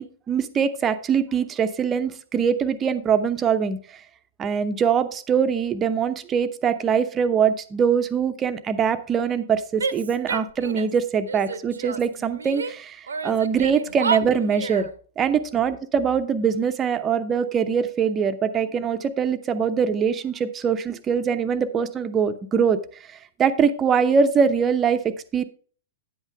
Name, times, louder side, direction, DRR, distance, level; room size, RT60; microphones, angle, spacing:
voice 1, 0.0-4.0 4.4-14.9 15.2-22.8 23.1-25.4, right 7 dB, 20° right, 11 dB, 0.7 m, -23 dB
Female speech woman speaking / Yell, 9.8-11.0 11.3-12.7 13.1-14.9, right 5 dB, 70° right, 0.8 m, -30 dB
10.0 x 8.1 x 3.4 m, 0.43 s
figure-of-eight pair, 105°, 0 cm